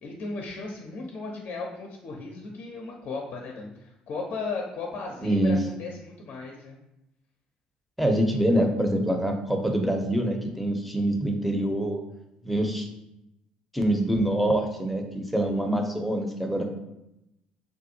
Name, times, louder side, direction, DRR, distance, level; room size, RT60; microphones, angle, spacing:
voice 1, 0.0-6.8, left 3 dB, 55° left, 1 dB, 0.6 m, -36 dB
voice 2, 5.2-5.6 8.0-12.0 12.4-12.9 13.7-16.7, right 1 dB, ahead, 3 dB, 0.7 m, -25 dB
3.7 x 2.4 x 2.7 m, 0.88 s
hypercardioid pair, 60°, 3 cm